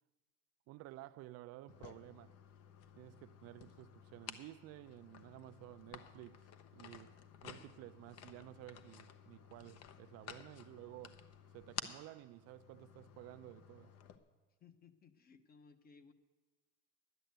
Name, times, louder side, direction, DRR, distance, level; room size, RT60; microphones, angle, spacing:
voice 1, 0.7-2.3 2.9-7.1 7.4-11.2 11.5-14.0, right 16 dB, 55° right, 0.5 m, -53 dB
sound 1, 1.7-14.2, left 9 dB, 55° left, 1.0 m, -53 dB
voice 2, 14.6-16.1, left 5 dB, 30° left, 1.0 m, -61 dB
10.5 x 10.0 x 8.0 m
cardioid pair, 135°, 29 cm